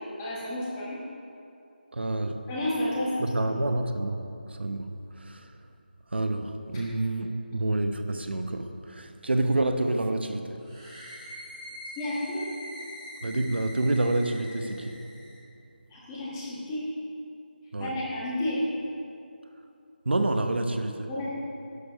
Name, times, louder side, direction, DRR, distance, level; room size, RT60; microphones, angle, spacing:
voice 1, 0.2-1.0 2.5-3.4 12.0-12.4 15.9-16.9 17.8-18.6 21.1-21.3, left 1 dB, 10° left, -8 dB, 1.5 m, -31 dB
voice 2, 1.9-2.4 3.2-4.2 4.5-4.9 5.2-5.5 6.1-10.6 13.2-15.0 17.7-17.9 20.1-21.1, right 2 dB, 80° right, 7 dB, 0.9 m, -28 dB
sound 1, 10.6-15.4, left 1 dB, 25° right, 2.7 m, -43 dB
11.5 x 6.9 x 5.3 m, 2.6 s
figure-of-eight pair, 175°, 6 cm